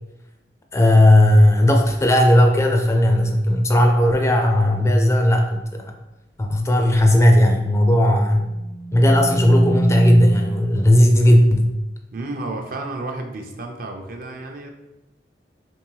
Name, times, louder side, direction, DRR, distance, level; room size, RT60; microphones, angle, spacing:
voice 1, 0.7-5.9 6.4-8.5 8.9-11.7, left 1 dB, 15° left, 2 dB, 0.3 m, -15 dB
sound 1, 8.4-10.9, right 2 dB, 75° left, 0.5 m, -26 dB
voice 2, 12.1-14.7, right 2 dB, 55° right, 3 dB, 0.5 m, -31 dB
3.5 x 3.0 x 3.1 m, 0.97 s
head